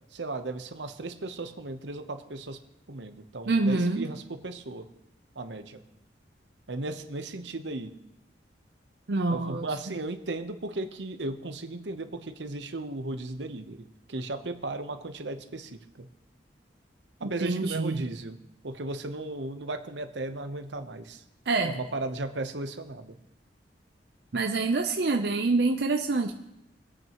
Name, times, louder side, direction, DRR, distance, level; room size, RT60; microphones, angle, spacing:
voice 1, 0.1-2.6 2.9-4.9 5.4-5.8 6.7-7.9 9.3-13.8 14.1-16.1 17.2-18.4 18.6-21.2 21.6-23.2, right 2 dB, 85° right, 8 dB, 1.0 m, -36 dB
voice 2, 3.5-4.1 9.1-9.7 17.2-18.1 21.5-21.8 24.3-26.3, right 3 dB, 65° right, 4 dB, 0.6 m, -26 dB
24.5 x 8.9 x 3.0 m, 0.83 s
head